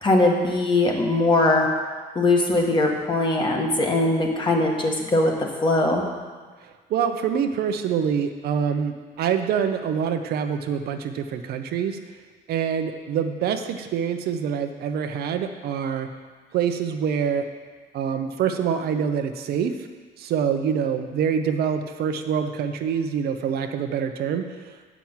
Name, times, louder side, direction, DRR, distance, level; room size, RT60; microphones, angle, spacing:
voice 1, 0.0-1.7 2.1-6.0, left 2 dB, 30° left, 0 dB, 1.6 m, -21 dB
voice 2, 6.9-12.0 12.5-16.1 16.5-17.4 17.9-19.7 20.2-24.4, right 7 dB, 70° right, 7 dB, 0.7 m, -25 dB
7.6 x 6.0 x 7.2 m, 1.5 s
cardioid pair, 110°, 17 cm